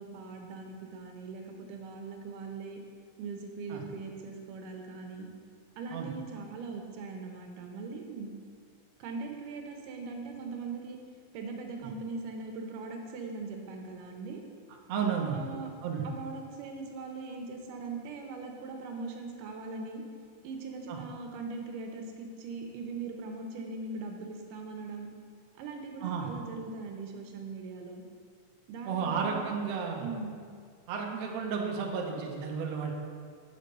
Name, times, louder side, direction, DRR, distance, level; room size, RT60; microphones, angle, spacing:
voice 1, 0.0-2.8 3.2-5.3 5.8-8.3 9.0-11.0 11.3-14.4 15.3-15.7 16.0-20.0 20.4-25.1 25.6-28.0 28.7-29.5 30.0-30.4, right 4 dB, 90° right, 3 dB, 2.4 m, -40 dB
voice 2, 14.9-15.4 15.8-16.0 20.9-21.0 26.0-26.3 28.9-30.0 30.9-32.9, right 6 dB, 70° right, 0 dB, 1.8 m, -32 dB
6.5 x 5.3 x 6.7 m, 2.1 s
omnidirectional pair, 3.7 m